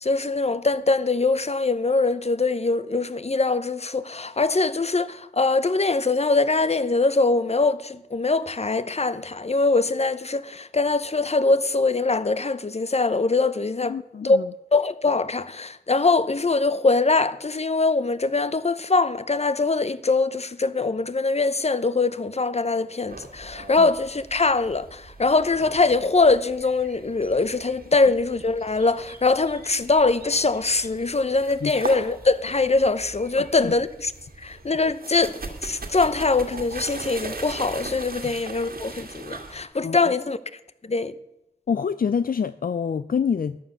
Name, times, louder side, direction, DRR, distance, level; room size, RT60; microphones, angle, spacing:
voice 1, 0.0-14.0 14.2-14.4 14.7-34.1 34.4-40.4 40.8-41.1, left 3 dB, 40° left, 0.9 m, -22 dB
voice 2, 13.9-14.5 23.8-23.9 31.6-31.7 33.4-33.7 38.2-38.3 39.8-40.0 41.7-43.6, left 6 dB, 60° left, 0.5 m, -26 dB
sound 1, 23.1-39.6, right 3 dB, 65° right, 2.1 m, -40 dB
13.5 x 9.7 x 6.8 m
cardioid pair, 50°, 17 cm